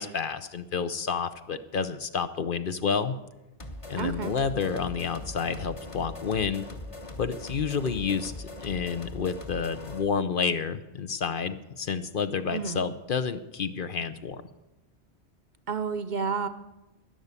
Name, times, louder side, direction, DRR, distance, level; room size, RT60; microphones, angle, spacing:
voice 1, 0.0-3.2 3.9-6.7 7.2-14.4, left 6 dB, 55° left, 12 dB, 0.8 m, -30 dB
sound 1, 3.6-10.1, left 1 dB, 30° left, 1.2 m, -40 dB
voice 2, 4.0-4.3 12.5-12.8 15.7-16.5, right 5 dB, 50° right, 10 dB, 0.7 m, -30 dB
13.0 x 10.5 x 8.2 m, 1.0 s
omnidirectional pair, 1.1 m